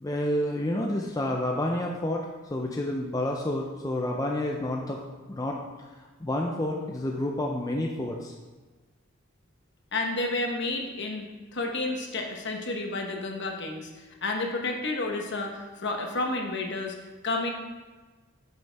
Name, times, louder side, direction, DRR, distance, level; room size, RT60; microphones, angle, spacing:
voice 1, 0.0-5.0 5.3-5.9 6.2-8.3, left 1 dB, 15° left, 0 dB, 0.5 m, -29 dB
voice 2, 9.9-13.9 14.2-17.0 17.2-17.5, left 2 dB, 55° left, 2 dB, 1.1 m, -30 dB
8.4 x 6.7 x 3.4 m, 1.3 s
head